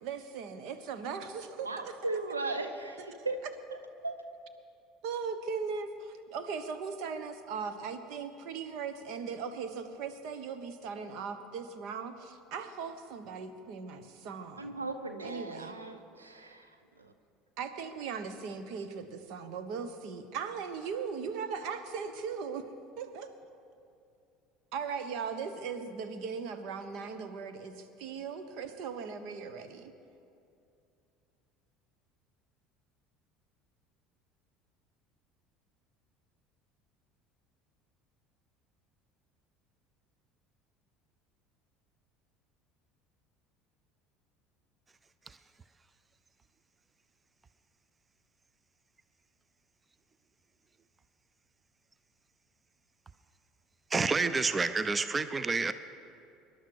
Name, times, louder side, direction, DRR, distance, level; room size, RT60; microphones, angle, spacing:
voice 1, 0.0-2.0 5.0-14.8 15.2-15.8 17.6-22.7 23.0-23.3 24.7-29.9, right 6 dB, 60° right, 1.2 m, -38 dB
voice 2, 1.6-3.4 3.7-4.2 14.6-16.7 17.0-17.1, right 2 dB, 90° right, 0.8 m, -37 dB
voice 3, 53.9-55.7, right 4 dB, 25° right, 0.6 m, -29 dB
25.5 x 11.5 x 4.8 m
figure-of-eight pair, 65°, 0 cm